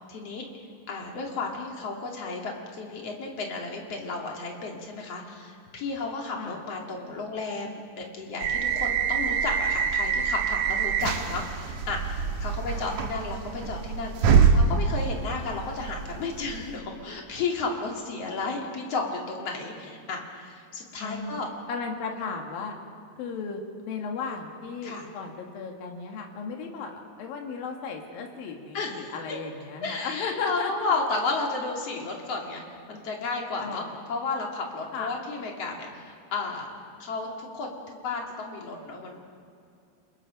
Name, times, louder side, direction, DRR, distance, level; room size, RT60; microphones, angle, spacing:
voice 1, 0.1-21.5 24.8-25.1 28.7-29.4 29.8-32.6 32.9-33.8 34.1-36.7 37.0-37.7 38.0-39.2, left 3 dB, 45° left, 0 dB, 3.4 m, -33 dB
sound 1, 8.4-16.8, right 6 dB, 65° right, 2.3 m, -25 dB
voice 2, 21.0-21.4 21.7-22.8 23.2-30.7 33.6-34.0 34.9-35.2, left 5 dB, 90° left, 2 dB, 3.5 m, -35 dB
29.0 x 20.5 x 5.2 m, 2.5 s
omnidirectional pair, 4.0 m